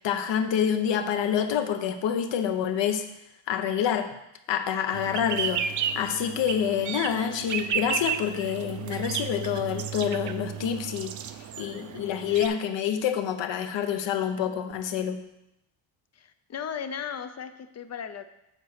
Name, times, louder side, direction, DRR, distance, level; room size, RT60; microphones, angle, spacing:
voice 1, 0.0-3.1 3.5-4.1 4.5-11.2 11.6-15.2, left 8 dB, 70° left, 8 dB, 0.8 m, -27 dB
sound 1, 4.9-12.5, right 8 dB, 40° right, 0.4 m, -33 dB
voice 2, 16.1-18.3, left 7 dB, 35° left, 10 dB, 0.4 m, -36 dB
7.3 x 4.1 x 6.5 m, 0.87 s
cardioid pair, 135°, 46 cm